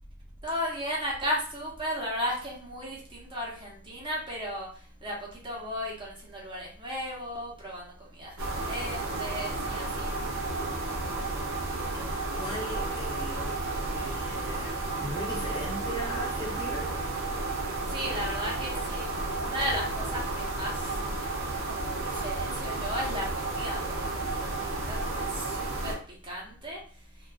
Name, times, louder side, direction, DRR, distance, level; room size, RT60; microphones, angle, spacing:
voice 1, 0.4-10.1 17.9-19.1 19.4-20.9 21.6-23.8 24.1-26.8, equal, 25° right, -4 dB, 0.7 m, -35 dB
sound 1, 8.4-25.9, right 2 dB, 65° right, 0.6 m, -32 dB
voice 2, 11.9-16.9, equal, 20° left, -4 dB, 0.7 m, -39 dB
2.4 x 2.3 x 2.3 m, 0.42 s
head